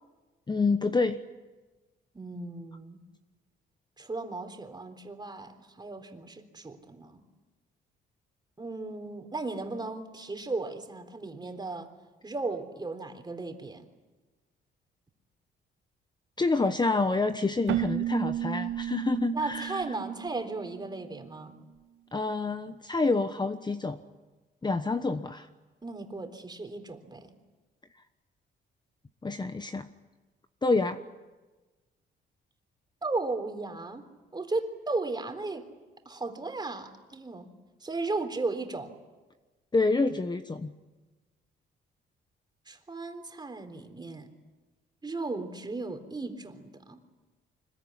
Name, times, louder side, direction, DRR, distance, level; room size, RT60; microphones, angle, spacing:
voice 1, 0.5-1.2 16.4-19.8 22.1-24.0 24.6-25.5 29.2-29.9 30.6-31.0 39.7-40.7, left 3 dB, 20° left, 9 dB, 1.1 m, -27 dB
voice 2, 2.1-3.0 4.0-7.2 8.6-11.9 12.2-13.9 19.3-21.6 25.8-27.3 33.0-34.1 34.3-35.7 36.1-37.5 37.8-38.9 42.7-44.3 45.0-47.0, right 3 dB, 20° right, 6 dB, 3.7 m, -35 dB
Keyboard (musical), 17.7-21.3, right 12 dB, 70° right, 1.0 m, -33 dB
25.5 x 21.5 x 10.0 m, 1.2 s
cardioid pair, 90°, 20 cm